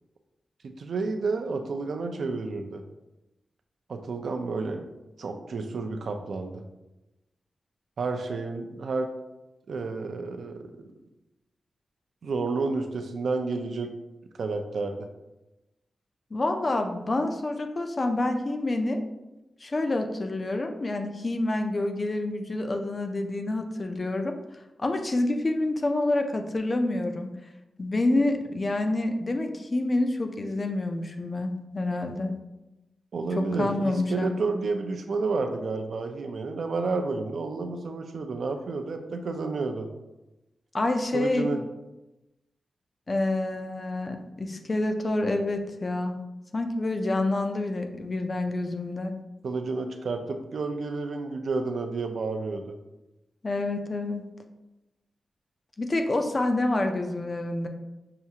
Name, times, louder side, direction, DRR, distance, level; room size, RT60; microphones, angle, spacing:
voice 1, 0.6-2.8 3.9-4.9 5.2-6.6 8.0-9.1 9.7-10.6 12.2-13.9 14.4-15.1 33.1-39.9 41.1-41.6 49.4-52.8, right 3 dB, 60° right, 5 dB, 0.4 m, -30 dB
voice 2, 16.3-19.0 19.6-27.5 27.8-32.3 33.4-34.3 40.7-41.5 43.1-46.2 46.5-49.1 53.4-54.2 55.8-57.7, left 2 dB, 30° left, 5 dB, 0.3 m, -28 dB
5.7 x 2.4 x 2.7 m, 0.99 s
wide cardioid pair, 160°, 0 cm